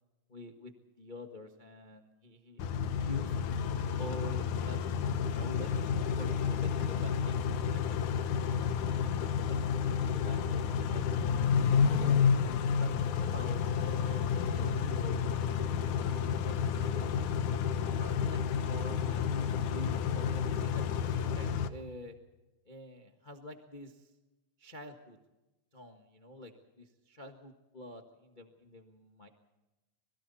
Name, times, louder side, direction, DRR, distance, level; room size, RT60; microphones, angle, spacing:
voice 1, 0.3-2.7 3.0-3.4 4.0-5.9 6.2-9.6 9.9-11.0 11.7-12.3 12.6-15.3 16.0-16.5 16.8-17.6 17.9-22.2 22.6-24.0 24.6-25.2 25.7-29.3, equal, 50° left, 4 dB, 0.5 m, -48 dB
Car / Idling / Accelerating revving vroom, 2.6-21.7, left 7 dB, 75° left, 2.5 m, -30 dB
26.5 x 23.0 x 4.2 m, 1.0 s
omnidirectional pair, 3.8 m